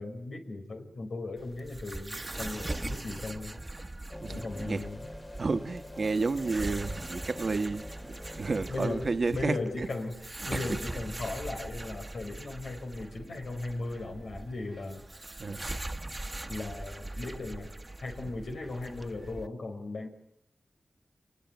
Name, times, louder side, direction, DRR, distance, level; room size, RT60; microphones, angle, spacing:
voice 1, 0.0-3.6 4.3-5.1 8.7-10.2 10.4-15.0 16.5-17.7 18.0-20.1, left 2 dB, 90° left, 4 dB, 5.4 m, -37 dB
sound 1, 1.4-19.5, right 2 dB, 25° right, 1.4 m, -41 dB
sound 2, 4.1-9.2, left 1 dB, 25° left, 2.3 m, -45 dB
voice 2, 4.2-4.8 5.4-9.9 10.5-10.7 15.4-15.7, right 3 dB, 60° right, 10 dB, 1.4 m, -31 dB
29.0 x 20.5 x 9.4 m, 0.73 s
wide cardioid pair, 75°, 0 cm